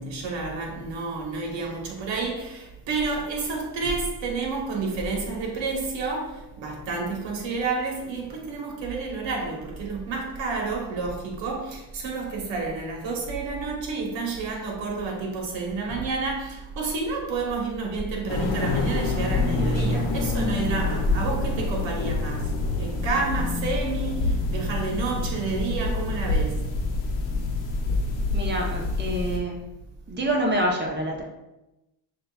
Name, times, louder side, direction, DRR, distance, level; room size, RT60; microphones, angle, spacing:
voice 1, 0.0-26.7, right 4 dB, 60° right, 1.4 m, -30 dB
sound 1, 18.3-29.4, left 3 dB, 80° left, 1.0 m, -26 dB
voice 2, 28.3-29.6 30.1-31.2, right 1 dB, 20° right, 1.0 m, -26 dB
6.2 x 2.7 x 2.4 m
supercardioid pair, 95°, 49 cm